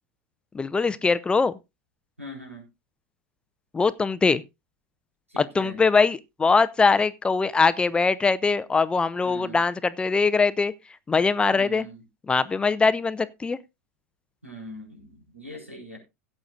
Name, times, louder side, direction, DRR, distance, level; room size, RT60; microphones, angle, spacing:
voice 1, 0.5-1.5 3.7-4.4 5.4-10.7 11.1-11.9 12.3-13.6, left 4 dB, 15° left, 0.6 m, -22 dB
voice 2, 2.2-2.6 5.3-5.8 9.2-9.6 11.5-12.0 14.4-16.0, equal, 90° right, 4.4 m, -41 dB
17.0 x 8.4 x 2.5 m
figure-of-eight pair, 85°, 7 cm